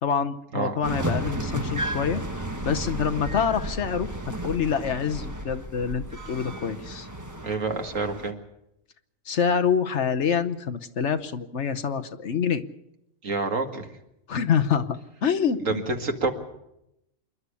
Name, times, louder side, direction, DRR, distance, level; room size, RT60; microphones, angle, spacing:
voice 1, 0.0-4.1 4.4-7.1 9.3-12.6 14.3-15.8, left 7 dB, 60° left, 9 dB, 1.2 m, -26 dB
sound 1, 0.8-8.3, right 1 dB, 15° right, 1.3 m, -33 dB
voice 2, 7.4-8.4 13.2-13.9 15.6-16.3, right 3 dB, 70° right, 5 dB, 2.2 m, -28 dB
27.5 x 11.5 x 8.4 m, 0.84 s
omnidirectional pair, 1.4 m